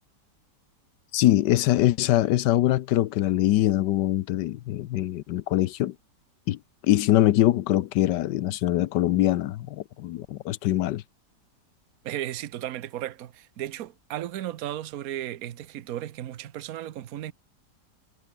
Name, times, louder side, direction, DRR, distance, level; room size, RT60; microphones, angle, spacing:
voice 1, 1.1-5.9 6.5-11.0, left 14 dB, 90° left, 1.4 m, -23 dB
voice 2, 12.0-17.3, right 12 dB, 60° right, 1.2 m, -35 dB
omnidirectional pair, 1.8 m